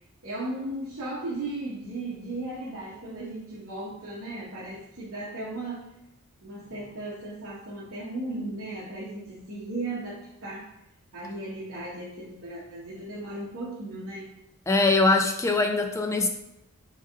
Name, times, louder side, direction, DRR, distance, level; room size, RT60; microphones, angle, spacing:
voice 1, 0.2-5.8 6.4-10.7 11.1-14.3, right 2 dB, 60° right, -7 dB, 0.9 m, -36 dB
voice 2, 14.7-16.3, left 3 dB, 15° left, 5 dB, 0.3 m, -22 dB
3.5 x 3.3 x 3.2 m, 0.88 s
head